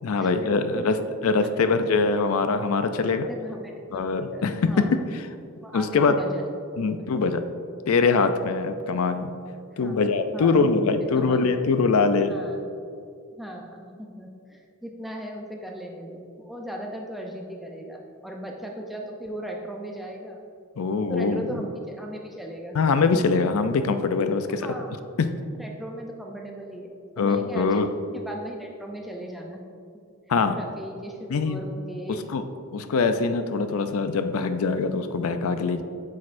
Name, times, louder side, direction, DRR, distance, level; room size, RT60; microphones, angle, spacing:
voice 1, 0.0-0.9 1.2-3.3 3.9-5.0 5.7-6.2 6.8-7.4 7.9-9.3 9.8-12.3 20.8-21.6 22.7-24.7 25.2-25.3 27.2-27.9 30.3-30.5 31.3-31.6 32.3-32.4 32.7-35.8, left 4 dB, 75° left, 9 dB, 0.4 m, -23 dB
voice 2, 0.7-1.0 3.0-4.9 5.6-7.3 9.7-10.0 10.3-10.8 11.1-11.4 12.2-12.6 13.4-20.4 21.1-22.8 24.5-25.1 25.6-27.8 28.1-29.6 30.6-32.2, right 1 dB, ahead, 0 dB, 0.5 m, -37 dB
8.4 x 6.3 x 2.6 m, 2.4 s
head